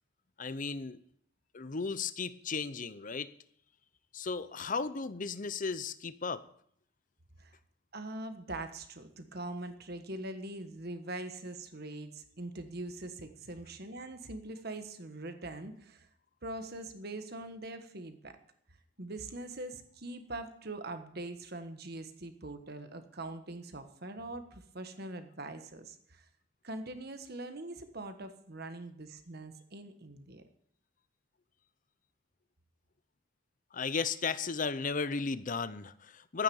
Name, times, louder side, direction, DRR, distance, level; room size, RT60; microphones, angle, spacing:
voice 1, 0.4-1.0 1.5-3.3 4.1-6.4 33.7-36.4, left 5 dB, 40° left, 14 dB, 0.7 m, -35 dB
voice 2, 7.9-16.1 16.4-18.4 19.0-26.2 26.6-30.4, right 2 dB, 50° right, 8 dB, 1.4 m, -42 dB
13.0 x 9.3 x 7.1 m, 0.67 s
head